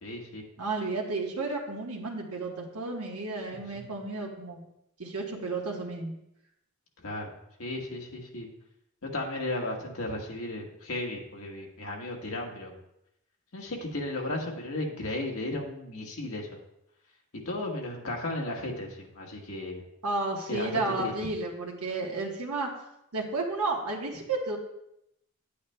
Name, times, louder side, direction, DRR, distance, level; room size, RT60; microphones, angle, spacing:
voice 1, 0.0-0.4 3.5-3.9 7.0-7.3 7.6-8.5 9.0-12.7 13.5-16.6 17.4-19.8 20.5-20.7 21.0-21.1, left 1 dB, 80° left, 0 dB, 1.4 m, -35 dB
voice 2, 0.6-4.6 5.0-6.1 20.0-22.7 23.1-24.6, right 3 dB, 90° right, -1 dB, 1.2 m, -32 dB
9.6 x 8.4 x 2.2 m, 0.82 s
head